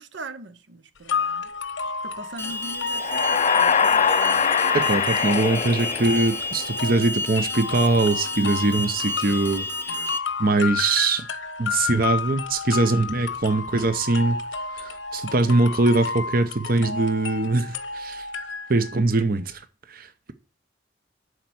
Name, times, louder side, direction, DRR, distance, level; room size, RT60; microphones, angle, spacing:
voice 1, 0.0-1.5 2.0-4.1 10.0-10.2, right 2 dB, 75° right, 1.0 m, -41 dB
sound 1, 1.1-19.0, left 5 dB, 90° left, 1.0 m, -32 dB
Alarm, 2.4-10.2, left 2 dB, 15° left, 0.7 m, -31 dB
sound 2, 3.0-6.8, left 6 dB, 35° left, 0.4 m, -23 dB
voice 2, 4.7-9.7 10.4-11.2 11.6-14.4 14.8-18.3 18.7-19.6 19.9-20.3, right 2 dB, 50° right, 0.8 m, -22 dB
11.0 x 4.5 x 7.8 m
head